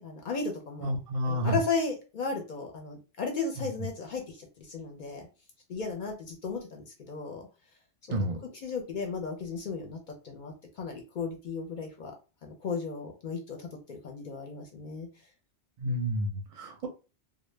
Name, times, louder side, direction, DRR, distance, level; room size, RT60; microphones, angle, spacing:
voice 1, 0.0-0.9 1.3-4.2 4.6-5.3 5.7-7.4 8.1-8.2 8.6-12.1 12.4-15.1, left 4 dB, 55° left, 3 dB, 0.6 m, -35 dB
voice 2, 0.8-1.6 3.6-3.7 8.1-8.4 15.8-16.9, equal, 50° right, 3 dB, 0.5 m, -30 dB
2.0 x 2.0 x 3.1 m, 0.32 s
omnidirectional pair, 1.1 m